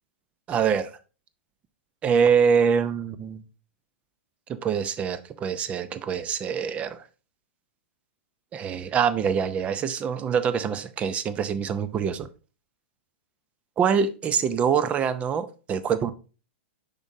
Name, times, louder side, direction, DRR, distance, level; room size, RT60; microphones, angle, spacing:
voice 1, 0.5-0.9 2.0-3.4 4.5-7.0 8.5-12.3 13.8-16.1, right 7 dB, 20° right, 0.5 m, -24 dB
6.9 x 5.3 x 2.7 m
hypercardioid pair, 150°, 7 cm